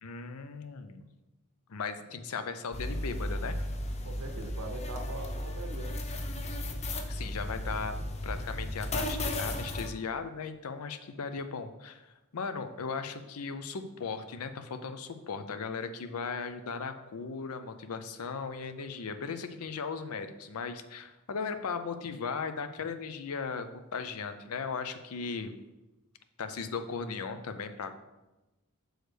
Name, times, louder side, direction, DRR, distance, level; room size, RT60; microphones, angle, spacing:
voice 1, 0.0-1.0 1.7-3.6 7.1-25.5 26.4-28.0, left 5 dB, 80° left, 9 dB, 0.6 m, -37 dB
sound 1, 2.7-9.9, left 1 dB, 30° left, 0.5 m, -35 dB
voice 2, 4.0-6.0, right 2 dB, 85° right, 4 dB, 0.8 m, -42 dB
6.3 x 6.3 x 3.3 m, 1.0 s
head